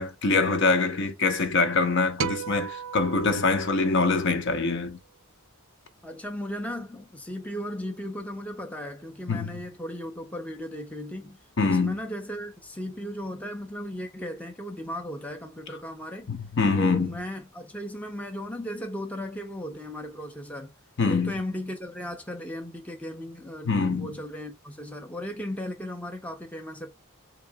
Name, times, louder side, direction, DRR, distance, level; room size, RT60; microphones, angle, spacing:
voice 1, 0.0-5.0 9.3-9.5 11.6-12.0 16.3-17.1 21.0-21.3 23.7-24.1, left 3 dB, 55° left, 0.7 m, -24 dB
sound 1, 2.2-4.7, right 8 dB, 65° right, 0.4 m, -36 dB
voice 2, 6.0-16.3 16.8-20.7 21.0-26.9, equal, 5° left, 0.6 m, -36 dB
3.7 x 2.8 x 3.3 m
head